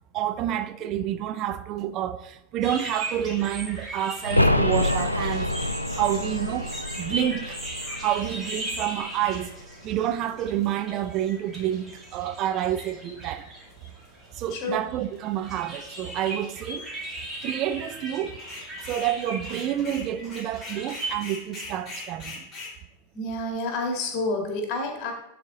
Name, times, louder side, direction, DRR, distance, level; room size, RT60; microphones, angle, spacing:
voice 1, 0.1-6.7 7.0-7.6 8.0-9.5 9.8-13.5 14.4-16.9 17.4-18.3 18.8-22.4, right 11 dB, 35° right, 0.4 m, -28 dB
sound 1, 2.6-21.1, right 1 dB, 10° right, 2.3 m, -38 dB
sound 2, 4.2-9.8 10.1-10.2, left 1 dB, 90° left, 0.4 m, -27 dB
sound 3, 18.4-19.1 19.4-22.7, left 3 dB, 15° left, 2.5 m, -40 dB
voice 2, 23.1-25.1, left 2 dB, 35° left, 2.1 m, -29 dB
10.5 x 4.1 x 3.8 m
figure-of-eight pair, 90°, 0 cm